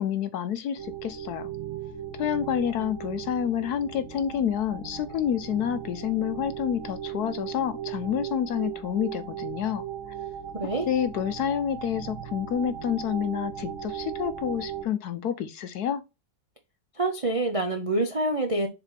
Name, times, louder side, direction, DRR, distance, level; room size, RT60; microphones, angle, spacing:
voice 1, 0.0-1.5 2.2-9.8 10.9-16.0, left 9 dB, 70° left, 1.1 m, -28 dB
sound 1, 0.8-14.8, right 9 dB, 15° right, 1.6 m, -37 dB
voice 2, 10.5-10.9 17.0-18.7, right 2 dB, 40° right, 0.4 m, -26 dB
7.0 x 4.1 x 3.3 m
omnidirectional pair, 2.0 m